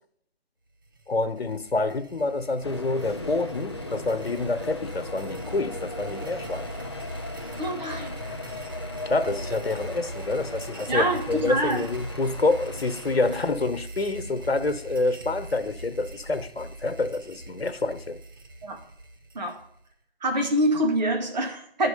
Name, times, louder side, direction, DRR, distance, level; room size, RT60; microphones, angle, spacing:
sound 1, 0.8-19.9, right 1 dB, 20° right, 0.6 m, -41 dB
voice 1, 1.1-6.7 9.1-18.2, left 3 dB, 90° left, 1.1 m, -27 dB
sound 2, 2.6-13.5, left 2 dB, 30° left, 0.4 m, -38 dB
voice 2, 7.6-8.4 10.9-11.9 18.6-18.8 19.3-19.6 20.2-21.9, right 1 dB, 45° right, 2.0 m, -26 dB
11.5 x 4.8 x 6.7 m
figure-of-eight pair, 155°, 30 cm